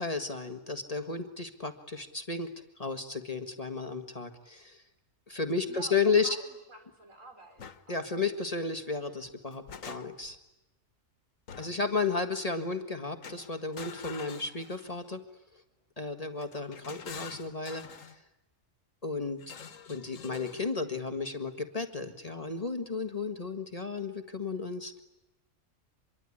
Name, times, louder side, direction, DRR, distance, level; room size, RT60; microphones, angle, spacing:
voice 1, 0.0-2.5 2.8-4.8 5.3-6.4 7.9-10.4 11.6-15.2 16.0-18.1 19.0-19.4 19.9-25.0, left 4 dB, 30° left, 7 dB, 1.8 m, -33 dB
voice 2, 5.7-8.1 11.6-12.1, right 2 dB, 75° right, 5 dB, 5.5 m, -51 dB
sound 1, 7.6-7.8 9.2-10.4 11.5-11.9 13.2-15.1 16.4-18.2 19.4-20.7, left 6 dB, 80° left, 1.7 m, -46 dB
26.5 x 23.0 x 10.0 m, 0.94 s
omnidirectional pair, 1.3 m